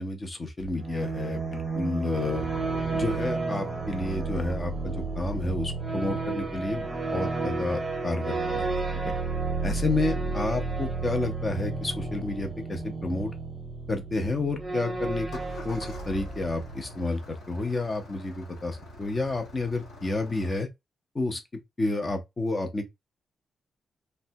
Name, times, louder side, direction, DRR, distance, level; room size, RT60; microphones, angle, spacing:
voice 1, 0.0-2.4 2.9-8.6 9.6-13.3 13.9-15.3 15.6-20.7 21.1-21.4 21.8-22.9, left 2 dB, 25° left, 0.6 m, -30 dB
sound 1, 0.6-17.2, right 3 dB, 20° right, 0.9 m, -32 dB
Engine starting, 15.2-20.6, left 2 dB, 60° left, 0.9 m, -45 dB
3.2 x 2.1 x 2.7 m
wide cardioid pair, 160°, 0 cm